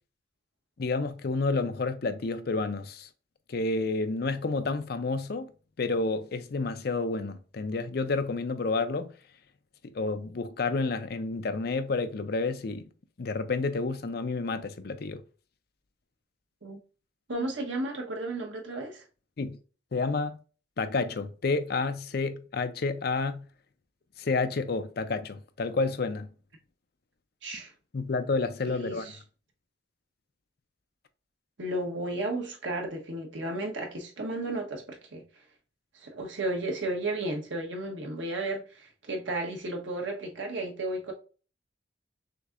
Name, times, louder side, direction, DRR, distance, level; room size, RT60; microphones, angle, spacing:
voice 1, 0.8-3.1 3.5-5.5 5.8-9.1 9.8-12.9 13.2-15.2 19.4-19.6 19.9-20.4 20.8-23.5 24.2-26.3 27.9-29.2, left 3 dB, 55° left, 0.5 m, -30 dB
voice 2, 17.3-19.0 27.4-27.7 28.7-29.2 31.6-35.2 35.9-41.1, right 2 dB, 85° right, 1.1 m, -33 dB
6.3 x 2.7 x 2.4 m
head